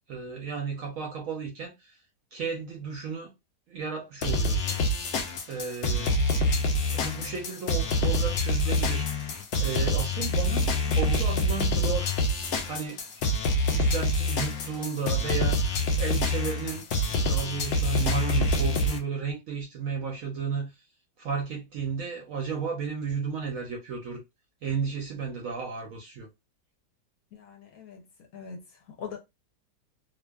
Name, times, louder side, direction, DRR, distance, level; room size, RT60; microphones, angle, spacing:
voice 1, 0.1-2.0 2.3-3.3 3.7-4.8 5.5-9.1 9.6-12.1 12.7-13.4 13.7-20.7 21.2-24.2 24.6-26.3, right 5 dB, 65° right, 0.8 m, -34 dB
sound 1, 4.2-19.0, left 1 dB, 90° left, 0.6 m, -26 dB
voice 2, 27.3-28.1 28.3-29.2, left 6 dB, 65° left, 1.0 m, -42 dB
2.7 x 2.4 x 2.2 m
omnidirectional pair, 1.8 m